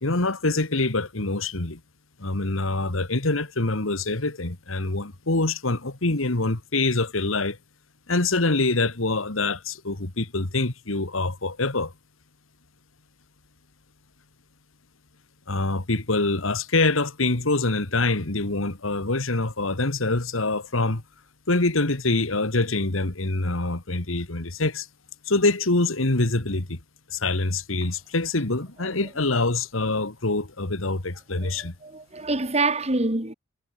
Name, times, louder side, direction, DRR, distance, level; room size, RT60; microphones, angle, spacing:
voice 1, 0.0-1.8 2.2-7.6 8.1-11.9 15.5-21.0 21.5-24.9 25.3-26.8 27.1-31.7, left 2 dB, 85° left, 2.3 m, -25 dB
voice 2, 31.4-33.3, right 2 dB, 30° right, 2.7 m, -26 dB
head